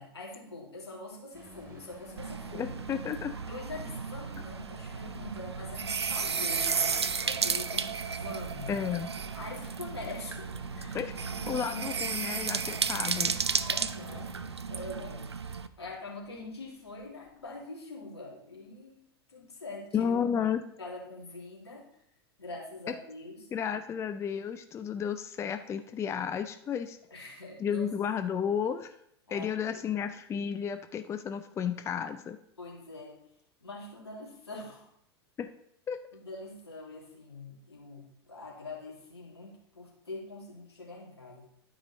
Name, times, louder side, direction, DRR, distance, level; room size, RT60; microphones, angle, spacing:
voice 1, 0.0-2.7 3.5-8.8 9.3-11.0 11.2-12.1 13.6-14.4 14.7-20.2 20.8-21.9 22.4-23.5 27.1-27.9 29.3-29.8 32.6-33.2 33.6-34.9 36.1-41.5, left 2 dB, 80° left, -3 dB, 2.5 m, -44 dB
sound 1, 1.3-17.5, right 1 dB, 20° right, 2.7 m, -51 dB
sound 2, 2.2-15.7, right 5 dB, 85° right, 0.4 m, -33 dB
voice 2, 2.5-3.3 8.7-9.1 10.9-11.1 11.5-13.3 19.9-20.6 22.9-23.0 23.5-27.0 27.6-28.9 29.3-32.4 35.4-35.5 35.9-36.0, left 7 dB, 20° left, 9 dB, 0.4 m, -32 dB
11.5 x 5.0 x 4.1 m, 0.72 s
figure-of-eight pair, 90°, 13 cm